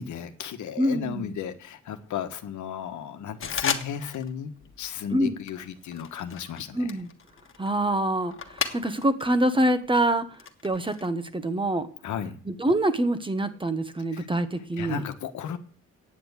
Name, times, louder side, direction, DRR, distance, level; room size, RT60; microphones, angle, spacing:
voice 1, 0.0-7.0 12.0-12.3 14.1-14.3 14.6-15.6, left 8 dB, 75° left, 8 dB, 1.3 m, -35 dB
voice 2, 0.8-1.3 5.1-5.3 6.7-7.1 7.6-8.3 8.7-10.2 10.6-11.9 12.5-15.0, right 1 dB, 15° right, 11 dB, 1.2 m, -25 dB
sound 1, 3.4-4.3 4.6-5.0 5.5-9.2 9.6-11.1, left 7 dB, 45° left, 1.6 m, -35 dB
9.5 x 7.1 x 8.2 m, 0.43 s
cardioid pair, 90°, 30 cm